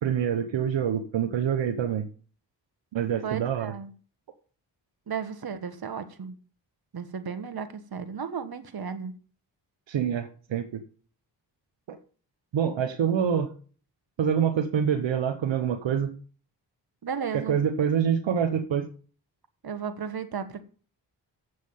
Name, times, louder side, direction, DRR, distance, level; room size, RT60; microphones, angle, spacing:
voice 1, 0.0-2.1 2.9-3.7 9.9-10.8 11.9-12.0 12.5-13.5 14.2-16.1 17.3-18.8, right 8 dB, 75° right, 1.2 m, -26 dB
voice 2, 3.2-3.9 5.1-6.4 6.9-9.1 17.0-17.6 19.6-20.6, right 6 dB, 50° right, 1.6 m, -34 dB
7.7 x 6.3 x 7.4 m
supercardioid pair, 40°, 45 cm